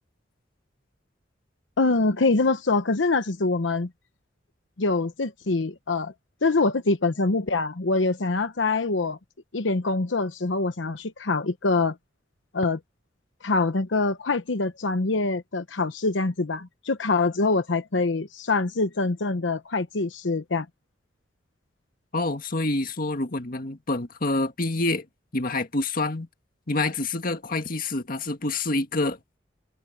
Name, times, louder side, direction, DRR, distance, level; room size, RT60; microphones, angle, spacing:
voice 1, 1.8-3.9 4.8-6.1 6.4-9.2 9.5-12.0 12.5-12.8 13.4-20.7, left 3 dB, 90° left, 0.9 m, -24 dB
voice 2, 22.1-25.1 25.3-26.3 26.7-29.2, left 2 dB, 50° left, 1.8 m, -27 dB
head